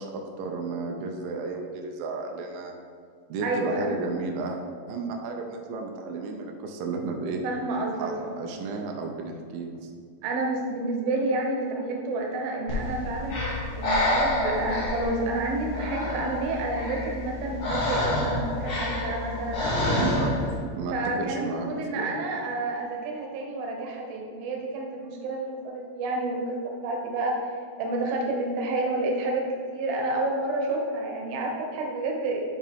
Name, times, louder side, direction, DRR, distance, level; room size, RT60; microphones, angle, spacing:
voice 1, 0.0-2.7 3.3-4.6 4.9-7.4 8.0-9.9 19.7-20.3 20.7-21.7 22.0-22.2, right 4 dB, 90° right, 2 dB, 2.0 m, -33 dB
voice 2, 3.4-4.0 7.4-8.4 10.2-13.4 13.8-20.1 20.9-27.4 27.8-32.4, right 2 dB, 75° right, 0 dB, 2.5 m, -29 dB
Breathing, 12.7-20.6, left 1 dB, 65° left, 3.4 m, -28 dB
9.9 x 3.7 x 3.5 m, 2.1 s
omnidirectional pair, 5.0 m